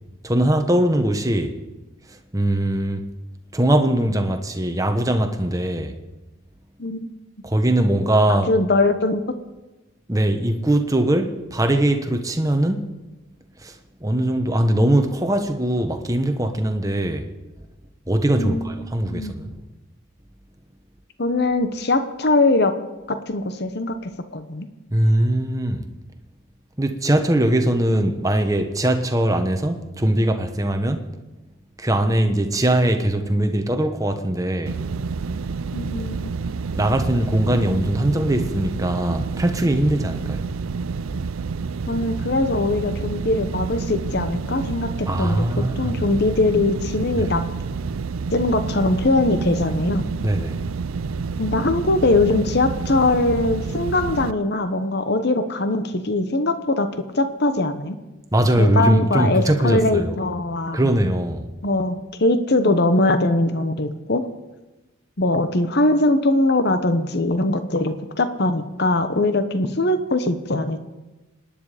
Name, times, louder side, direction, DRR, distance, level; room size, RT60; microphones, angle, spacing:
voice 1, 0.2-1.6 2.1-3.1 3.5-5.9 7.4-8.5 10.1-12.9 13.6-13.7 14.0-17.3 18.1-19.5 24.9-25.8 26.8-31.0 31.8-34.8 36.7-40.4 45.1-46.0 47.1-47.3 50.2-50.6 58.3-60.2 60.7-61.5, right 1 dB, 15° right, 5 dB, 1.1 m, -21 dB
voice 2, 8.3-9.2 18.4-18.6 19.1-19.3 21.2-22.7 23.1-24.7 35.7-36.5 41.9-45.4 45.8-47.4 48.3-50.1 51.4-58.0 58.6-60.9 61.6-64.2 65.2-70.8, left 2 dB, 50° left, 9 dB, 1.1 m, -21 dB
sound 1, 34.7-54.3, right 4 dB, 80° right, 0.5 m, -29 dB
26.0 x 10.5 x 5.1 m, 1.1 s
head